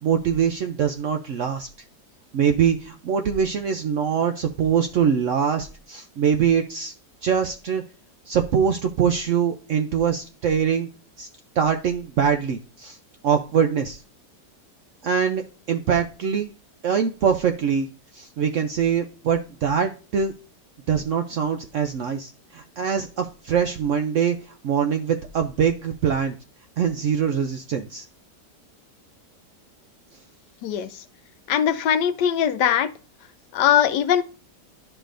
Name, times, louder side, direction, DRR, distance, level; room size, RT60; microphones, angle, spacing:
voice 1, 0.0-1.7 2.3-6.9 7.2-7.8 8.3-10.9 11.2-11.3 11.6-13.0 13.2-14.0 15.0-15.4 15.7-16.5 16.8-17.9 18.1-20.3 20.9-26.4 26.8-28.1, right 7 dB, 70° right, 6 dB, 0.7 m, -23 dB
voice 2, 30.6-31.0 31.5-32.9 33.5-34.2, left 9 dB, 80° left, 11 dB, 1.2 m, -21 dB
11.0 x 4.9 x 2.5 m, 0.35 s
omnidirectional pair, 1.8 m